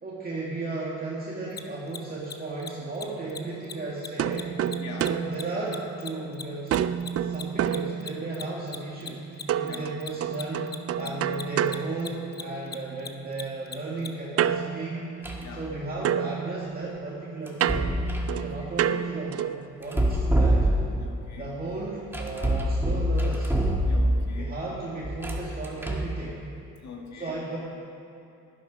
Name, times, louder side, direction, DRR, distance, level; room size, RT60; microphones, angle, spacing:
voice 1, 0.0-4.8 5.0-15.1 15.5-17.9 18.4-19.5 19.8-20.7 21.4-23.5 24.4-26.4 27.1-27.6, right 2 dB, 30° right, -6 dB, 1.9 m, -35 dB
Mechanisms, 1.5-1.6 1.9-2.3 2.6-2.7 2.9-3.0 3.3-3.4 3.6-3.7 4.0-6.8 7.0-14.1, left 6 dB, 35° left, 0.8 m, -38 dB
sound 1, 4.2-6.3 6.7-8.5 9.5-12.7 14.4-15.8 16.0-19.7, right 9 dB, 50° right, 0.4 m, -30 dB
voice 2, 4.8-5.1 9.6-9.9 11.0-11.2 15.4-15.6 18.3-18.7 21.0-21.5 23.8-24.5 26.8-27.4, left 5 dB, 65° left, 0 dB, 2.2 m, -42 dB
sound 2, 15.2-15.6 17.5-18.4 19.8-21.1 22.1-24.3 25.0-26.2, right 1 dB, 5° right, 1.5 m, -25 dB
11.5 x 11.5 x 4.9 m, 2.8 s
cardioid pair, 90°, 30 cm